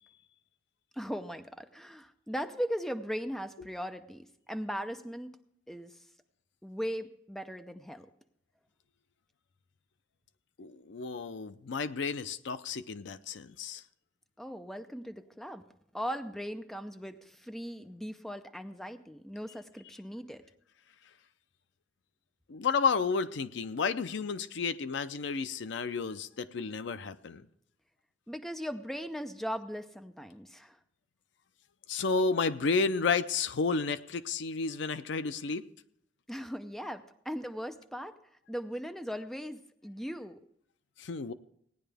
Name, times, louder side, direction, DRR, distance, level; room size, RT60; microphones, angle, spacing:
voice 1, 0.9-5.4 5.7-6.0 6.6-8.1 14.4-15.6 15.9-20.4 28.3-30.8 36.3-38.2 38.5-40.4, equal, ahead, 8 dB, 0.6 m, -38 dB
voice 2, 10.6-13.8 22.5-27.4 31.9-35.6 41.0-41.3, left 4 dB, 70° left, 13 dB, 0.5 m, -31 dB
17.5 x 9.9 x 3.4 m, 0.71 s
head